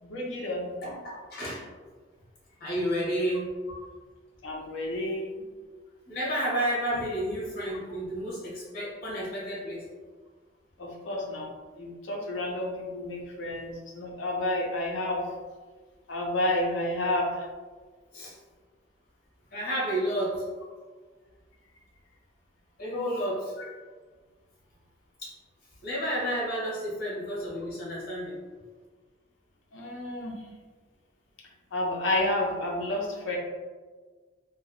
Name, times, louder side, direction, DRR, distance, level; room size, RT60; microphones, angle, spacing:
voice 1, 0.0-0.7 3.7-3.8 4.4-5.4 10.8-15.2 16.1-17.5 23.6-23.7 29.7-30.4 31.7-33.4, left 1 dB, 80° left, -1 dB, 0.6 m, -30 dB
voice 2, 0.8-1.6 2.6-3.5 6.1-9.9 18.1-18.3 19.5-20.4 22.8-23.5 25.2-25.3 25.8-28.4, equal, 55° left, -6 dB, 1.1 m, -31 dB
3.0 x 2.4 x 2.4 m, 1.4 s
head